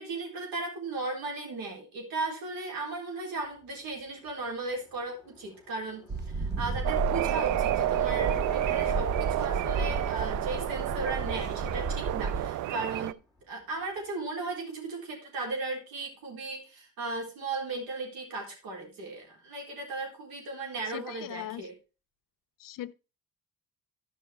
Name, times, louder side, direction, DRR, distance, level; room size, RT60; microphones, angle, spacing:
voice 1, 0.0-13.2 13.5-21.7, right 3 dB, 80° right, 4.0 m, -36 dB
Car passing by / Engine, 3.4-14.1, left 2 dB, 10° right, 2.4 m, -49 dB
sound 1, 6.1-12.5, right 3 dB, 30° right, 1.0 m, -33 dB
sound 2, 6.8-13.1, right 14 dB, 60° right, 0.5 m, -30 dB
voice 2, 20.9-21.7 22.6-22.9, left 13 dB, 65° left, 0.6 m, -40 dB
12.0 x 5.5 x 4.3 m
cardioid pair, 110°, 35 cm